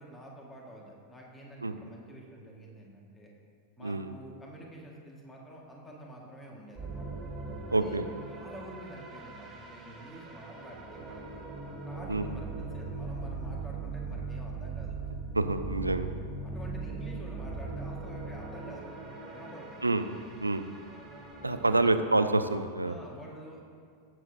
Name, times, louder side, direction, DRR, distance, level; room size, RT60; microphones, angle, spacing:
voice 1, 0.0-3.3 3.8-7.1 7.7-8.0 8.3-11.4 11.9-15.0 16.4-19.8 21.6-21.9 22.8-23.6, equal, 15° left, -2 dB, 2.0 m, -48 dB
sound 1, 6.8-21.7, right 4 dB, 15° right, 2.5 m, -40 dB
voice 2, 7.7-8.0 12.1-12.3 15.3-16.1 19.8-20.0 20.4-20.6 21.4-22.9, right 2 dB, 80° right, 10 dB, 0.5 m, -27 dB
16.5 x 7.8 x 2.9 m, 2.3 s
figure-of-eight pair, 90°, 0 cm